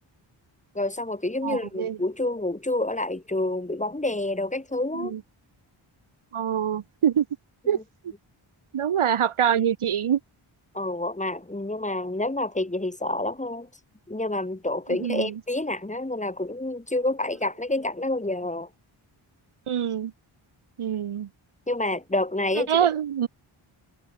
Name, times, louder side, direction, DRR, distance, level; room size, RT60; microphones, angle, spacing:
voice 1, 0.7-5.1 10.7-13.7 14.1-18.7 21.7-22.7, left 2 dB, 15° left, 2.1 m, -28 dB
voice 2, 1.4-2.0 4.9-5.2 6.3-7.2 7.7-7.8 8.7-10.2 15.0-15.4 19.7-20.1 20.8-21.3 22.7-23.3, right 9 dB, 75° right, 1.1 m, -25 dB
cardioid pair, 50°, 50 cm